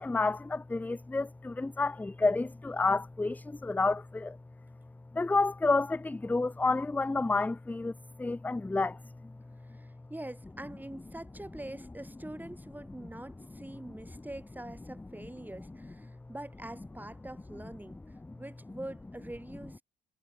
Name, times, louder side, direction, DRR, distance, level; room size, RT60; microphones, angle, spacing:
voice 1, 0.0-4.4 5.1-7.9 8.2-9.0, left 3 dB, 10° left, 0.3 m, -29 dB
voice 2, 9.7-18.0 18.3-19.8, right 1 dB, 10° right, 6.5 m, -44 dB
cardioid pair, 90°, 20 cm